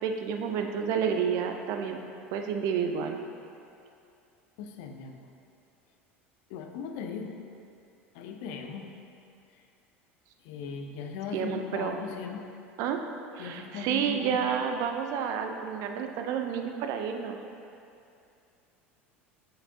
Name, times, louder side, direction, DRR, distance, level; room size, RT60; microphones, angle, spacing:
voice 1, 0.0-3.2 11.3-11.9 12.8-13.0 13.3-17.4, right 7 dB, 55° right, 4 dB, 0.5 m, -30 dB
voice 2, 4.6-5.2 6.5-7.3 8.1-8.9 9.5-9.6 10.4-12.4 13.4-14.4, left 6 dB, 60° left, 5 dB, 0.5 m, -38 dB
7.4 x 4.7 x 2.7 m, 2.6 s
hypercardioid pair, 75°, 7 cm